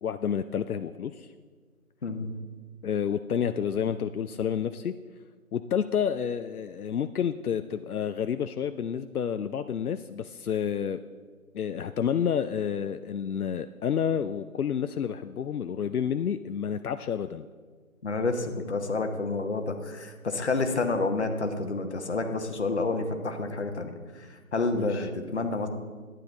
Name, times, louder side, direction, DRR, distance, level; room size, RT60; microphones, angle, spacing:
voice 1, 0.0-1.3 2.8-4.9 5.5-11.0 11.5-17.5 24.7-25.1, left 8 dB, 80° left, 10 dB, 0.5 m, -29 dB
voice 2, 2.0-2.3 18.0-25.7, left 3 dB, 50° left, 6 dB, 1.0 m, -29 dB
11.5 x 9.1 x 3.9 m, 1.5 s
figure-of-eight pair, 160°, 44 cm